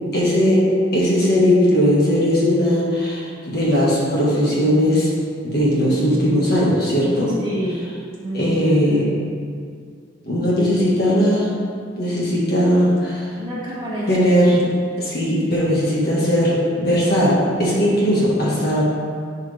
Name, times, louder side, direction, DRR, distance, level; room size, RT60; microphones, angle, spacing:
voice 1, 0.1-0.6 0.9-5.1 5.4-7.3 8.3-9.1 10.2-11.5 12.0-13.3 14.1-14.6 15.0-18.8, equal, 50° left, -6 dB, 1.7 m, -18 dB
voice 2, 7.4-7.9 8.2-8.9 13.4-14.2, right 1 dB, 25° right, -9 dB, 2.0 m, -28 dB
11.0 x 4.7 x 3.5 m, 2.1 s
head